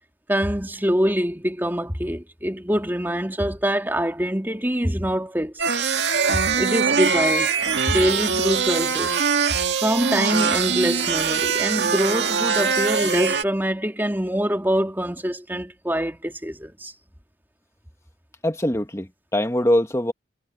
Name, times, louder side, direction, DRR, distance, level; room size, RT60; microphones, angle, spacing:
voice 1, 0.3-5.5 6.3-7.6 7.8-9.2 9.8-16.9, equal, 10° right, 2.9 m, -24 dB
sound 1, 5.6-13.4, right 6 dB, 85° right, 1.9 m, -22 dB
voice 2, 18.4-20.1, left 1 dB, 15° left, 1.6 m, -22 dB
head